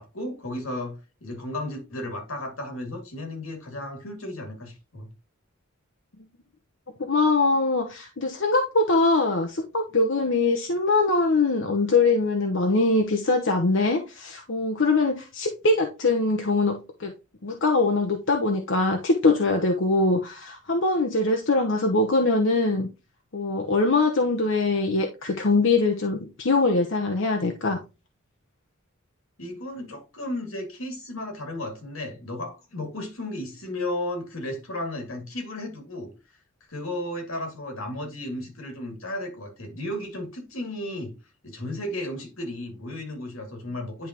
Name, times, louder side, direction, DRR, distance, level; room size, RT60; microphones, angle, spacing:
voice 1, 0.0-5.1 29.4-36.1 36.7-41.1 41.4-44.1, left 1 dB, 90° left, 2.4 m, -34 dB
voice 2, 7.0-17.1 17.4-22.9 23.3-27.8, left 3 dB, 65° left, 0.9 m, -22 dB
10.5 x 3.6 x 3.0 m
head